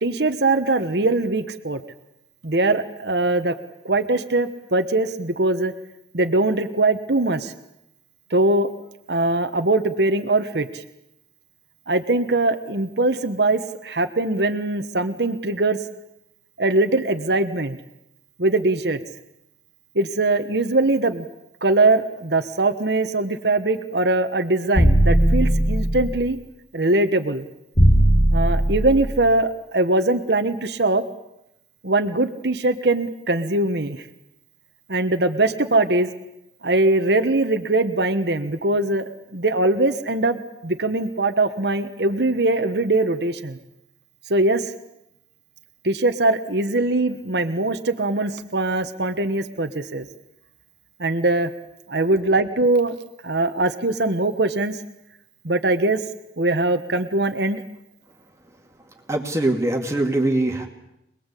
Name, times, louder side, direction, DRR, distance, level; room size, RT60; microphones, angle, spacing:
voice 1, 0.0-1.8 2.4-3.6 3.8-5.7 6.1-7.5 8.3-8.7 9.1-10.8 11.9-15.8 16.6-17.8 18.4-19.0 19.9-21.3 21.6-26.4 26.7-27.5 28.3-31.0 31.8-34.1 34.9-36.1 36.6-43.6 44.3-44.7 45.8-50.0 51.0-51.5 51.9-53.0 53.2-54.8 55.4-56.0 56.4-57.6, right 2 dB, 65° right, 8 dB, 1.3 m, -21 dB
sound 1, 24.8-26.2 27.8-29.2, right 1 dB, 35° left, 2.0 m, -17 dB
voice 2, 59.1-60.7, right 2 dB, 15° right, 2 dB, 2.4 m, -22 dB
26.0 x 21.0 x 8.4 m, 0.85 s
head